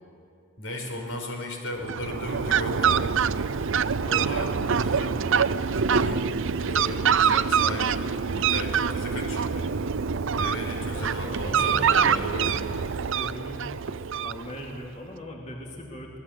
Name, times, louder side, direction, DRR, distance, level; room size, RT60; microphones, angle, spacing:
voice 1, 0.6-3.1 4.1-4.6 4.8-5.3 5.9-6.3 6.6-9.7 10.4-12.6, left 1 dB, 90° left, 2 dB, 5.2 m, -35 dB
Fowl, 1.8-14.8, right 6 dB, 65° right, 0.6 m, -25 dB
voice 2, 10.9-12.3 13.2-13.6 14.2-16.2, left 1 dB, 35° left, -1 dB, 2.8 m, -39 dB
26.0 x 19.0 x 8.3 m, 2.5 s
head